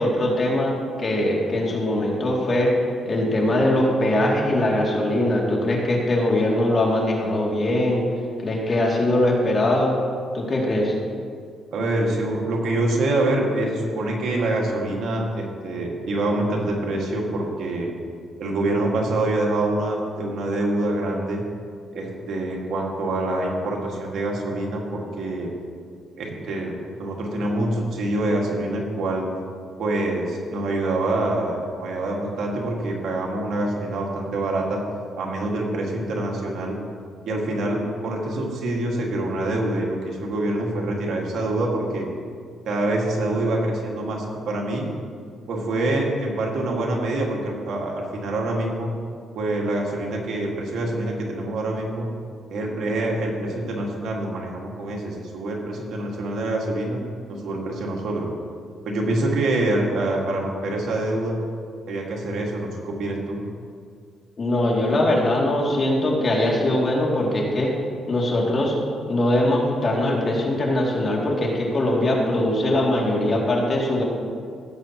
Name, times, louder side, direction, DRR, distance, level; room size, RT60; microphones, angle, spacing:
voice 1, 0.0-2.7 3.0-8.0 8.4-9.9 10.3-10.9 64.4-67.7 68.1-68.7 69.1-74.0, left 1 dB, 40° left, -3 dB, 2.5 m, -21 dB
voice 2, 11.7-17.9 18.4-21.4 21.9-25.5 26.2-29.3 29.8-34.8 35.2-36.8 37.3-42.1 42.7-44.9 45.5-48.9 49.4-52.1 52.5-57.0 57.3-58.3 58.8-61.4 61.9-63.4, right 2 dB, 70° right, -1 dB, 1.9 m, -25 dB
16.0 x 8.0 x 3.0 m, 2.2 s
cardioid pair, 90°, 0 cm